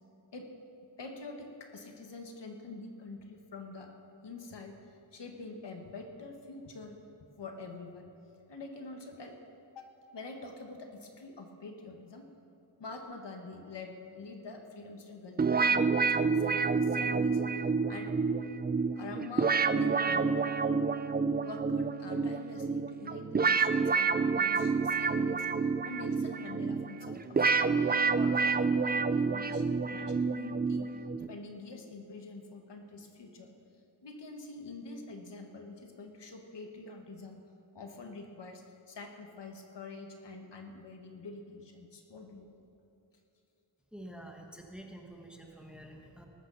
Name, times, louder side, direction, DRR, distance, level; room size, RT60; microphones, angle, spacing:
voice 1, 1.0-3.9 4.2-7.0 7.4-8.1 8.5-9.4 9.7-12.2 12.8-17.4 17.9-18.1 19.0-20.3 21.4-25.5 25.8-27.8 28.1-30.9 31.3-33.5 34.0-37.4 37.7-42.7, left 3 dB, 60° left, 3 dB, 1.7 m, -46 dB
sound 1, 15.4-31.3, right 4 dB, 25° right, 0.3 m, -29 dB
voice 2, 43.9-46.2, right 1 dB, ahead, 2 dB, 1.2 m, -48 dB
19.0 x 14.0 x 4.2 m, 2.8 s
wide cardioid pair, 170°, 46 cm